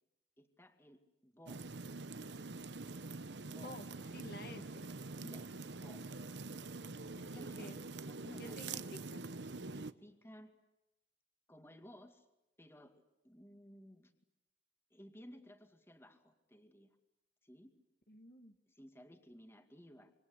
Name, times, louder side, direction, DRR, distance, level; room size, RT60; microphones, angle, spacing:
voice 1, 0.4-1.7 3.4-4.3 5.2-6.1 7.1-7.7 8.1-8.8 9.6-10.5 11.5-12.3 12.6-14.1 14.9-16.9 17.4-17.7 18.7-20.1, equal, 15° left, 6 dB, 2.2 m, -57 dB
sound 1, 1.5-9.9, right 3 dB, 70° right, 0.9 m, -45 dB
voice 2, 4.1-4.9 7.3-7.8 8.4-9.2 18.1-18.6, left 1 dB, 55° left, 7 dB, 1.9 m, -51 dB
27.0 x 25.0 x 8.4 m, 0.93 s
head